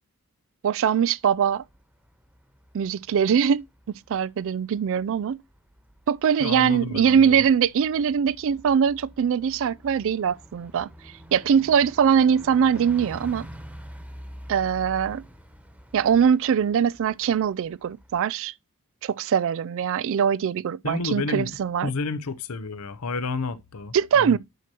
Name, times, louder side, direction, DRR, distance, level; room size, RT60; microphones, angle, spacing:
voice 1, 0.6-1.6 2.7-3.6 4.1-5.4 6.1-10.9 11.3-13.5 14.5-15.2 15.9-18.5 19.0-21.9 23.9-24.4, right 7 dB, 60° right, 0.3 m, -22 dB
Bus, 1.2-18.3, equal, 5° right, 1.2 m, -47 dB
voice 2, 6.4-7.4 20.8-21.5 21.8-24.4, left 3 dB, 90° left, 0.8 m, -30 dB
9.2 x 6.1 x 2.9 m
head